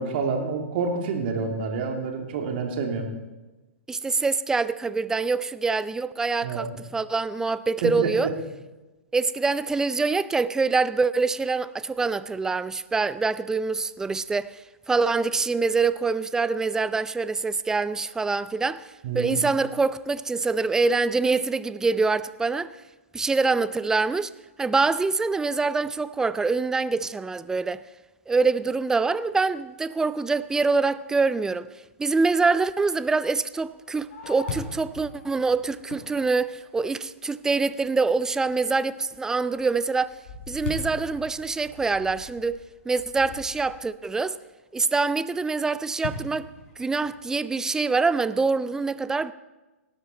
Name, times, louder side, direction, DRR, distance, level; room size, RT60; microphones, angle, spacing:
voice 1, 0.0-3.1 6.4-6.7 7.8-8.3 19.0-19.4, right 4 dB, 50° right, 2.7 m, -28 dB
voice 2, 3.9-8.3 9.1-14.5 14.9-18.9 19.1-22.7 23.1-24.3 24.6-27.8 28.3-31.7 32.0-40.1 40.5-42.6 42.9-44.4 44.7-49.3, right 4 dB, 10° right, 0.4 m, -25 dB
Fireworks, 33.6-37.1 37.7-37.8 38.3-38.7 39.1-43.9 46.0-47.4, left 4 dB, 55° left, 4.5 m, -40 dB
18.5 x 12.5 x 4.3 m
hypercardioid pair, 115°, 7 cm